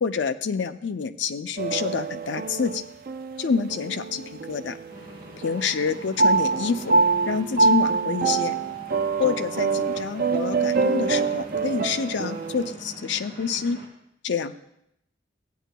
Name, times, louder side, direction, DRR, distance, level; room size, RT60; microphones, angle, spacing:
voice 1, 0.0-2.8 3.4-4.8 5.4-6.9 7.3-8.6 9.2-13.8 14.2-14.5, left 6 dB, 75° left, 8 dB, 0.5 m, -27 dB
sound 1, 1.6-5.1 5.4-12.7, right 4 dB, 50° right, 0.3 m, -25 dB
sound 2, 4.9-13.9, equal, 25° right, 2.2 m, -44 dB
15.5 x 9.1 x 2.2 m, 0.78 s
head